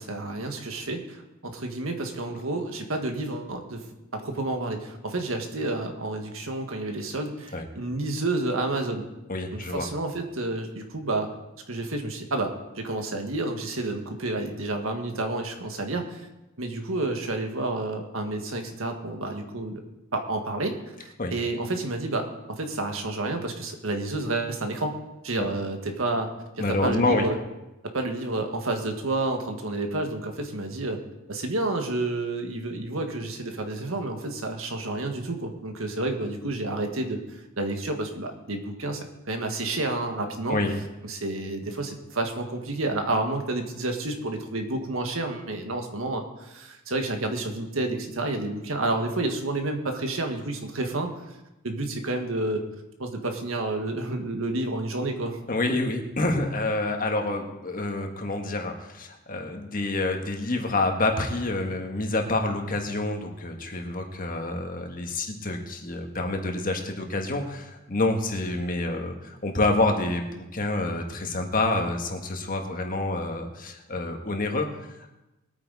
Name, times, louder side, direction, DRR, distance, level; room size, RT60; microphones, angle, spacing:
voice 1, 0.0-3.9 4.1-9.0 9.5-11.3 11.7-16.3 16.6-19.8 20.1-24.9 25.2-27.3 27.9-31.0 31.3-40.6 41.1-51.1 51.6-52.6 53.0-55.4, right 2 dB, 80° right, 4 dB, 1.7 m, -30 dB
voice 2, 9.3-9.9 21.2-21.3 25.4-25.5 26.6-27.3 40.5-40.7 55.5-75.1, left 2 dB, 40° left, 3 dB, 1.6 m, -28 dB
21.0 x 9.1 x 4.1 m, 0.98 s
head